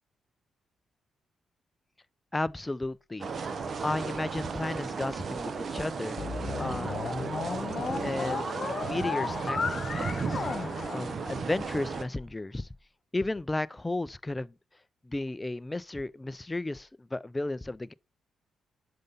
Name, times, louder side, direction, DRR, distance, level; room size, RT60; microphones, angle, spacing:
voice 1, 2.3-3.3 3.8-6.2 6.6-6.9 8.0-10.4 10.9-12.7 13.1-14.5 15.0-17.9, left 2 dB, 15° left, 0.3 m, -34 dB
sound 1, 3.2-12.0, right 5 dB, 45° right, 0.8 m, -35 dB
sound 2, 6.2-11.7, left 5 dB, 40° left, 1.5 m, -34 dB
6.6 x 5.3 x 4.0 m
cardioid pair, 115°, 0 cm